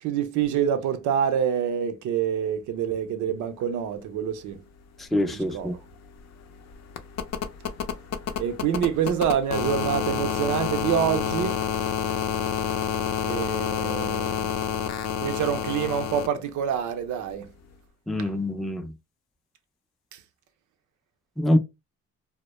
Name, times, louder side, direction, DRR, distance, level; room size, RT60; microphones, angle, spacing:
voice 1, 0.0-4.6 5.3-5.7 8.4-11.6 13.3-14.5 15.2-17.5 18.2-18.3 20.1-20.2, right 8 dB, 75° right, 0.5 m, -26 dB
sound 1, 5.0-5.1 5.4-16.3 17.7-17.8, left 8 dB, 60° left, 0.5 m, -29 dB
voice 2, 5.0-5.8 18.1-18.9 21.4-21.6, left 1 dB, ahead, 0.3 m, -25 dB
2.1 x 2.0 x 2.9 m
cardioid pair, 90°, 30 cm